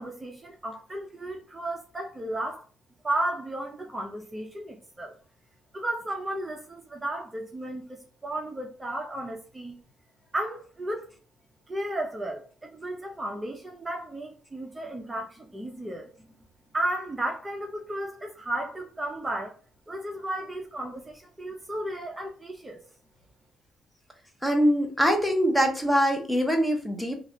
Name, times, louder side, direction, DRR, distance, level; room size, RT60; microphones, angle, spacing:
voice 1, 0.0-2.6 3.0-5.1 5.7-9.8 10.3-11.1 11.7-16.3 16.7-19.5 19.9-22.8, right 1 dB, 20° right, 0.6 m, -34 dB
voice 2, 24.4-27.2, equal, 10° left, 0.8 m, -23 dB
3.2 x 2.4 x 2.7 m
cardioid pair, 90°, 0 cm